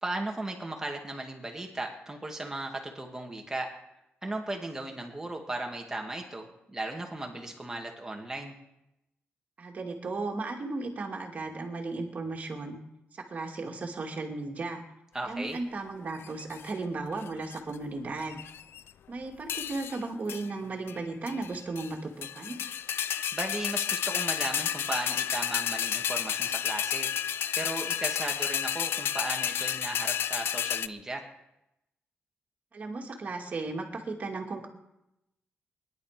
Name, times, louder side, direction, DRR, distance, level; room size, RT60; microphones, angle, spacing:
voice 1, 0.0-3.7 4.2-8.5 15.1-15.6 23.3-27.1 27.5-31.3, right 2 dB, 15° right, 1 dB, 2.4 m, -36 dB
voice 2, 9.6-12.8 13.3-14.8 15.3-18.4 19.1-22.6 32.7-34.7, right 3 dB, 40° right, 1 dB, 2.7 m, -35 dB
sound 1, 16.2-16.7 17.3-17.8 18.2-18.9 19.5-20.0 20.3-20.5 20.9-21.0 21.3-21.9 22.2-30.9, left 9 dB, 70° left, 0.5 m, -31 dB
22.0 x 11.0 x 5.2 m, 0.88 s
wide cardioid pair, 150°, 4 cm